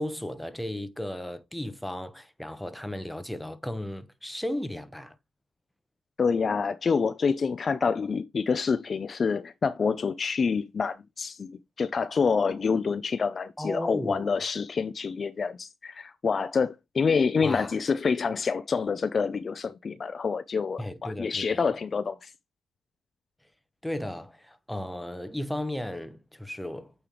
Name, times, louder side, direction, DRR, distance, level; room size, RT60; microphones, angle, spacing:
voice 1, 0.0-5.2 13.6-14.4 17.4-17.7 20.8-21.7 23.8-26.9, left 1 dB, 5° left, 0.8 m, -35 dB
voice 2, 6.2-22.3, left 5 dB, 40° left, 0.4 m, -27 dB
8.7 x 3.3 x 3.8 m
cardioid pair, 90°, 0 cm